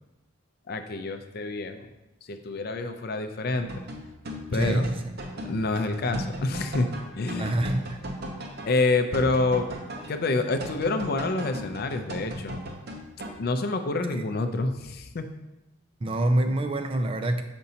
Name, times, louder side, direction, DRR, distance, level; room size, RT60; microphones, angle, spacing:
voice 1, 0.7-1.9 2.3-3.7 4.5-4.9 5.5-6.9 7.2-7.6 8.7-9.7 10.1-12.6 13.4-15.3, left 3 dB, 50° left, 7 dB, 0.5 m, -27 dB
sound 1, 3.6-13.3, equal, 55° right, 0.7 m, -37 dB
voice 2, 4.5-5.0 7.4-8.0 14.1-14.2 16.0-17.4, right 1 dB, 30° right, 7 dB, 0.4 m, -26 dB
6.8 x 5.2 x 2.8 m, 0.96 s
head